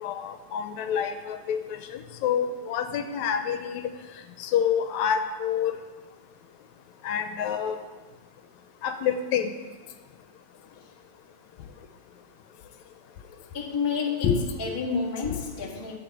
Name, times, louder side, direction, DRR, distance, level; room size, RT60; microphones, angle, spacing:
voice 1, 0.0-3.8 4.4-5.8 7.0-7.8 8.8-9.5 14.2-14.4 15.2-15.4, left 8 dB, 80° left, 8 dB, 2.0 m, -27 dB
voice 2, 13.5-14.3 14.6-16.0, left 5 dB, 20° left, -3 dB, 0.6 m, -29 dB
10.5 x 5.5 x 7.8 m, 1.3 s
omnidirectional pair, 3.3 m